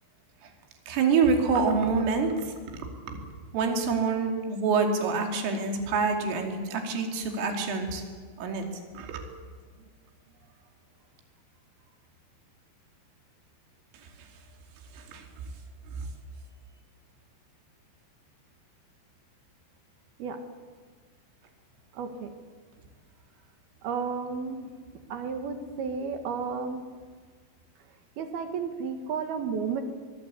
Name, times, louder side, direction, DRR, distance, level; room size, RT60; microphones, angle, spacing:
voice 1, 0.9-2.3 3.1-3.2 3.5-8.0 8.4-8.7 8.9-9.2 14.9-15.2 15.9-16.1, right 4 dB, 80° right, 4 dB, 5.3 m, -26 dB
voice 2, 21.9-22.3 23.8-24.7 25.1-26.8 28.2-29.8, right 5 dB, 65° right, 7 dB, 2.9 m, -32 dB
24.5 x 20.5 x 8.4 m, 1.5 s
omnidirectional pair, 5.8 m